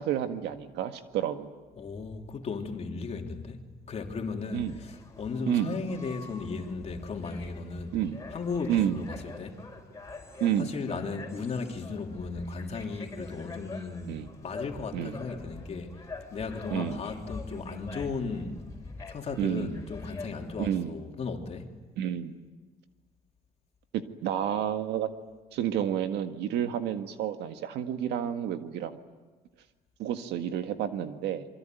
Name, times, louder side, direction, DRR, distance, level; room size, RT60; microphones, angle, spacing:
voice 1, 0.0-1.5 4.5-4.8 5.4-5.8 7.9-8.2 8.7-9.1 10.4-10.7 14.1-14.3 14.9-15.2 16.7-17.0 19.4-19.8 20.6-21.0 22.0-22.4 23.9-25.1 25.5-29.0 30.0-31.5, right 10 dB, 80° right, 1.9 m, -30 dB
voice 2, 1.8-3.6 3.9-8.0 8.3-9.6 10.6-16.0 16.3-18.6 19.1-21.7, left 4 dB, 40° left, 3.2 m, -36 dB
sound 1, 4.4-20.7, left 3 dB, 20° left, 5.3 m, -45 dB
26.5 x 24.0 x 9.3 m
cardioid pair, 110°, 17 cm